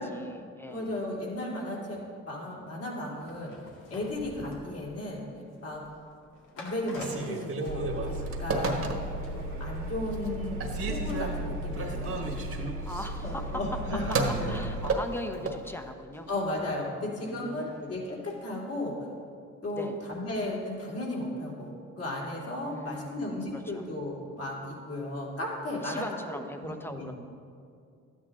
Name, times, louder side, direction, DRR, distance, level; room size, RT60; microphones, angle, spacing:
voice 1, 0.0-0.9 12.8-13.5 14.3-16.3 17.1-17.9 19.7-20.0 22.6-23.8 25.8-27.1, left 1 dB, 5° left, 6 dB, 0.8 m, -40 dB
voice 2, 0.7-2.0 2.3-3.5 3.9-5.2 5.6-5.8 6.6-8.9 9.3-12.3 13.2-14.3 14.6-14.7 16.3-18.9 19.6-26.0 26.3-27.1, left 1 dB, 55° left, -4 dB, 3.0 m, -35 dB
sound 1, 3.1-8.3 8.6-8.9 9.2-18.4 18.7-18.8, left 2 dB, 80° left, 2.0 m, -50 dB
Telephone, 6.9-9.3 9.8-10.3 10.6-15.6, right 3 dB, 50° right, 1.5 m, -33 dB
Engine, 7.7-14.9, right 1 dB, 75° right, 1.9 m, -36 dB
12.5 x 9.1 x 3.7 m, 2.3 s
cardioid pair, 90°, 30 cm